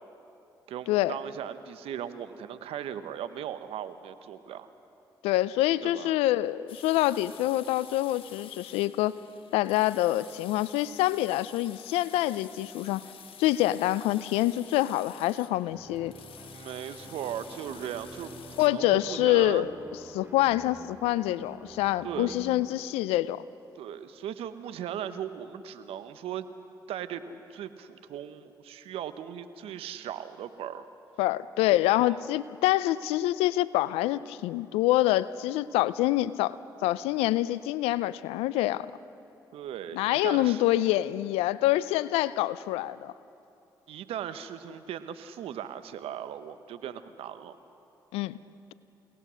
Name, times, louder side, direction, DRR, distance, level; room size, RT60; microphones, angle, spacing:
voice 1, 0.7-4.7 5.8-6.1 16.5-19.7 22.0-22.3 23.7-26.5 26.9-30.8 31.6-32.2 39.5-40.6 43.9-47.6, right 9 dB, 75° right, 11 dB, 1.0 m, -38 dB
voice 2, 5.2-9.1 9.5-13.0 13.4-16.1 18.6-19.7 20.1-23.4 31.2-36.6 36.8-38.9 39.9-43.1 48.1-48.4, left 15 dB, 85° left, 18 dB, 0.5 m, -26 dB
sound 1, 6.7-18.7, left 8 dB, 65° left, 1.4 m, -50 dB
sound 2, 15.7-22.7, right 2 dB, 20° right, 4.5 m, -48 dB
29.0 x 18.5 x 6.3 m, 2.7 s
hypercardioid pair, 45°, 10 cm